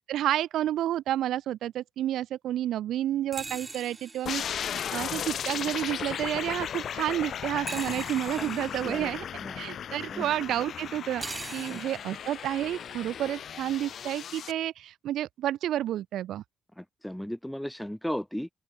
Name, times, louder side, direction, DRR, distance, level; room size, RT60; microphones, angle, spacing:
voice 1, 0.1-4.6 4.9-9.2 9.6-11.2 11.5-16.4, right 12 dB, 80° right, 2.9 m, -30 dB
sound 1, 3.3-5.1 7.7-9.1 11.2-12.2, right 3 dB, 25° right, 6.8 m, -42 dB
sound 2, 4.3-14.5, left 8 dB, 60° left, 0.7 m, -36 dB
voice 2, 16.8-18.5, equal, 5° left, 1.1 m, -35 dB
open air
cardioid pair, 90°, 0 cm